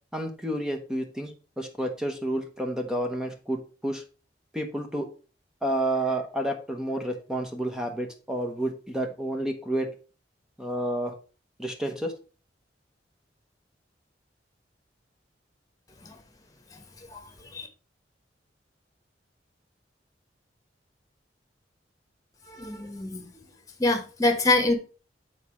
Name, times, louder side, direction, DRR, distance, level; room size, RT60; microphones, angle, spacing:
voice 1, 0.1-4.0 4.5-5.1 5.6-9.9 10.6-11.1 11.6-12.1, right 1 dB, 5° right, 4 dB, 0.8 m, -30 dB
voice 2, 17.1-17.7 22.5-23.3 23.8-24.7, left 2 dB, 20° left, 5 dB, 1.2 m, -26 dB
6.6 x 4.2 x 4.9 m, 0.35 s
head